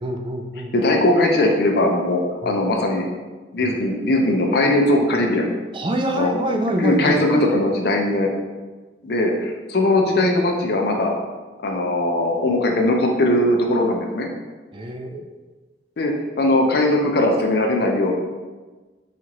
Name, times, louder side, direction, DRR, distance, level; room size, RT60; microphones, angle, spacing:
voice 1, 0.0-0.7 2.4-2.6 3.6-3.7 5.7-7.3 14.7-15.2, right 1 dB, 30° right, 4 dB, 0.3 m, -25 dB
voice 2, 0.7-3.1 3.5-5.5 6.1-6.3 6.8-8.3 9.0-11.1 11.6-14.3 16.0-18.1, left 1 dB, 60° left, 1 dB, 0.5 m, -19 dB
4.4 x 2.4 x 2.9 m, 1.3 s
head